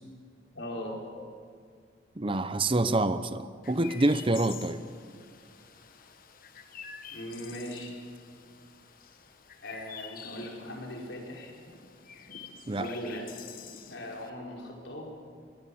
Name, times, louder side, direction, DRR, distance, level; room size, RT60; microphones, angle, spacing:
voice 1, 0.5-1.0 7.1-8.0 9.6-11.5 12.7-13.3 13.9-15.1, equal, 70° left, -1 dB, 5.3 m, -39 dB
voice 2, 2.2-4.8 12.7-12.9, right 2 dB, 30° right, 12 dB, 0.7 m, -27 dB
Chirp tweet, 3.6-14.3, left 7 dB, 50° left, 1.5 m, -48 dB
25.0 x 19.5 x 7.1 m, 2.1 s
head